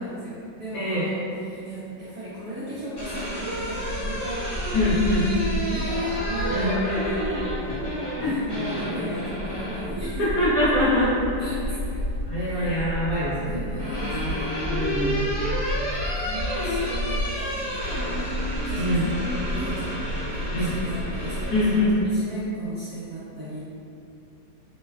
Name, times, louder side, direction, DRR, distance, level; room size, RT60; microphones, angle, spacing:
voice 1, 0.0-5.1 5.7-10.4 11.4-12.8 13.3-14.7 15.9-18.3 18.6-23.6, right 1 dB, 70° right, -10 dB, 0.8 m, -37 dB
voice 2, 0.7-1.0 4.7-5.3 6.5-6.7 8.2-8.4 10.2-11.5 11.7-11.8 12.2-13.7 14.7-15.2 18.8-19.1 20.5-20.7 21.5-21.9, left 1 dB, 65° left, -10 dB, 0.9 m, -24 dB
sound 1, 2.7-9.9 11.4-12.1 13.3-21.8, equal, 40° left, 0.9 m, -31 dB
Bark, 2.9-22.1, equal, 85° left, 1.3 m, -33 dB
3.1 x 2.1 x 2.2 m, 2.6 s
omnidirectional pair, 2.0 m